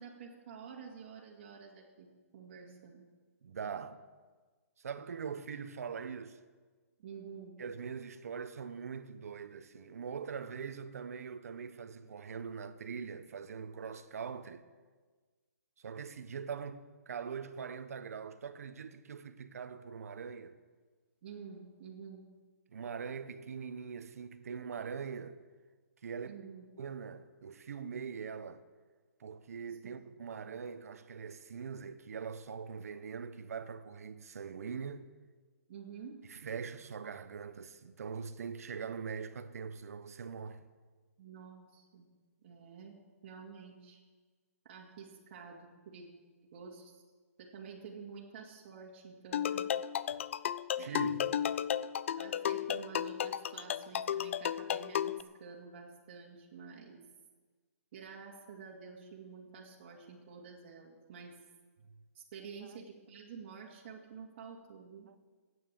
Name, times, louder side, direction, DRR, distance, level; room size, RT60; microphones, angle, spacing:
voice 1, 0.0-3.1 7.0-7.6 21.2-22.3 26.3-26.7 35.7-36.2 41.2-42.1 42.4-43.0 43.2-44.0 44.6-46.1 46.5-47.0 47.4-49.6 50.0-50.1 50.8-51.1 52.2-57.0 57.9-61.4 62.1-65.1, right 6 dB, 40° right, 2.4 m, -49 dB
voice 2, 3.4-4.0 4.8-6.4 7.6-14.6 15.8-20.6 22.7-25.4 26.0-26.4 26.8-28.6 29.2-35.1 36.3-40.7 50.8-51.3 62.7-62.8 65.1-65.2, right 6 dB, 70° right, 1.1 m, -42 dB
sound 1, 49.3-55.2, left 9 dB, 55° left, 0.5 m, -34 dB
14.0 x 9.4 x 7.7 m
hypercardioid pair, 160°, 8 cm